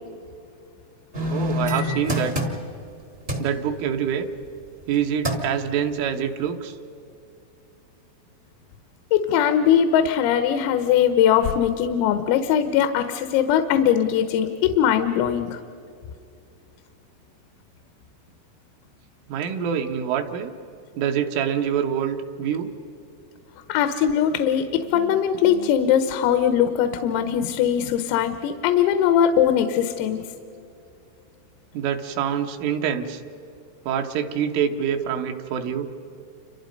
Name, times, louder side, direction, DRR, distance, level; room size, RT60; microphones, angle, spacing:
sound 1, 1.1-2.9 3.3-3.5 4.8-4.9 5.2-5.6 6.1-6.2, left 1 dB, 40° right, 0.8 m, -26 dB
voice 1, 1.3-2.4 3.4-4.3 4.9-6.8 19.3-20.5 21.0-22.7 31.7-33.2 33.9-35.9, right 8 dB, 75° right, 4 dB, 3.6 m, -25 dB
voice 2, 9.1-15.6 23.7-30.2, left 9 dB, 85° left, 9 dB, 3.7 m, -20 dB
30.0 x 26.5 x 5.3 m, 2.7 s
omnidirectional pair, 5.9 m